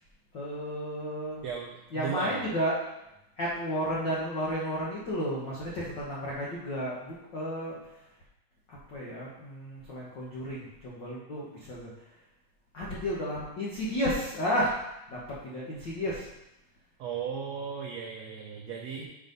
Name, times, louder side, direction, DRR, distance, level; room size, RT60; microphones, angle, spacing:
voice 1, 0.3-1.4 1.9-2.8 3.4-7.8 8.7-11.9 12.7-14.8 15.1-16.3 19.0-19.1, equal, 65° left, -6 dB, 1.1 m, -32 dB
voice 2, 1.4-2.4 17.0-19.0, right 7 dB, 90° right, 0 dB, 1.5 m, -36 dB
6.5 x 5.0 x 5.3 m, 0.89 s
omnidirectional pair, 3.9 m